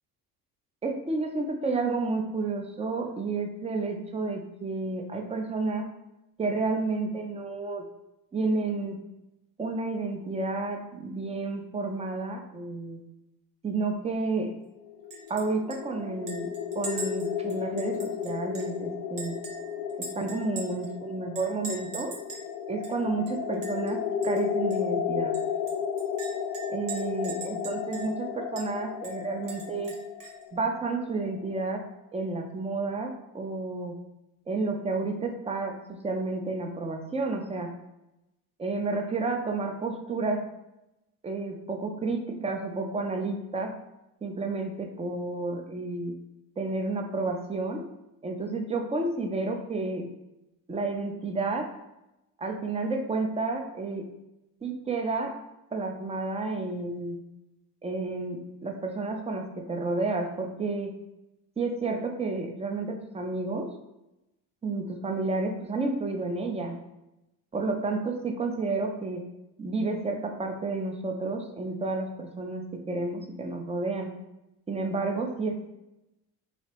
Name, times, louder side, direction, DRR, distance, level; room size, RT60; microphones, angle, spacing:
voice 1, 0.8-5.9 6.4-7.8 8.3-9.0 9.6-13.0 13.6-14.5 15.3-19.4 20.1-22.1 22.7-25.4 26.7-29.9 30.5-31.8 32.1-33.9 34.5-37.7 38.6-40.5 41.2-43.8 44.2-46.2 46.6-47.9 48.2-50.1 50.7-51.7 52.4-54.1 54.6-55.4 55.7-57.2 57.8-61.0 61.6-63.7 64.6-66.8 67.5-69.2 69.6-74.1 74.7-75.7, right 3 dB, 15° right, 3 dB, 0.5 m, -31 dB
sound 1, 14.8-31.6, left 7 dB, 45° left, 0.4 m, -34 dB
Chink clink, 15.1-15.4 15.7-15.8 16.3-18.8 19.2-20.9 21.3-22.5 22.8-22.9 23.3-23.9 24.2-24.4 24.7-24.8 25.3-28.2 28.6-28.7 29.0-30.4, right 3 dB, 40° right, 1.0 m, -41 dB
2.8 x 2.8 x 3.0 m, 0.92 s
hypercardioid pair, 60°, 49 cm